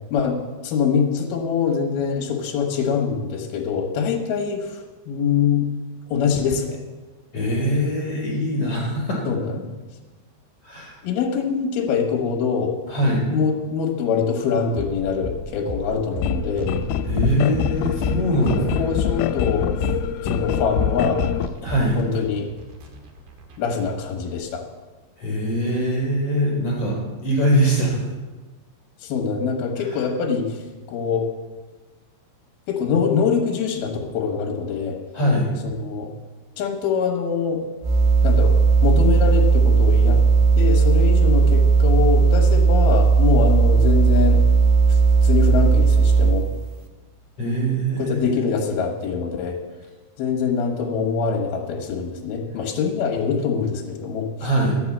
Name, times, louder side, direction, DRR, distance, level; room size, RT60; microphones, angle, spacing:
voice 1, 0.1-4.8 5.1-5.7 6.1-6.8 9.3-9.7 11.0-12.8 13.3-16.7 18.5-19.8 20.3-21.2 22.0-22.5 23.6-24.6 29.0-30.6 30.9-31.3 32.7-35.0 35.6-36.1 36.6-37.6 38.2-40.2 40.6-44.4 44.9-46.5 48.0-49.6 50.2-54.5, left 6 dB, 65° left, 1 dB, 2.8 m, -24 dB
voice 2, 7.3-9.3 10.6-10.9 12.9-13.2 17.1-18.9 21.6-22.0 25.2-28.1 29.8-30.0 35.1-35.5 47.4-48.3 54.4-54.8, equal, 35° left, -4 dB, 4.1 m, -22 dB
sound 1, 14.7-24.4, left 1 dB, 60° right, 2.6 m, -34 dB
sound 2, 16.2-21.5, left 8 dB, 85° left, 3.0 m, -24 dB
sound 3, 37.8-46.5, right 5 dB, 75° right, 2.7 m, -16 dB
12.0 x 8.3 x 7.3 m, 1.2 s
omnidirectional pair, 5.5 m